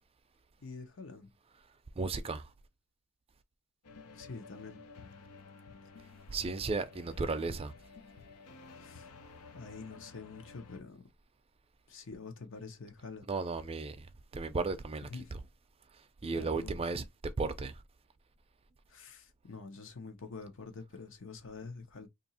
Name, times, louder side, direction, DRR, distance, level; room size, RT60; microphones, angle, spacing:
voice 1, 0.6-1.3 4.1-4.8 8.8-9.1 9.5-11.1 11.9-13.3 15.1-15.3 16.3-16.8 18.9-22.1, left 4 dB, 60° left, 0.8 m, -46 dB
voice 2, 2.0-2.5 6.3-7.7 13.3-14.1 14.3-15.1 16.2-17.8, right 3 dB, 25° right, 0.4 m, -34 dB
sound 1, 3.8-10.8, left 4 dB, 90° left, 0.7 m, -53 dB
2.8 x 2.6 x 4.1 m
head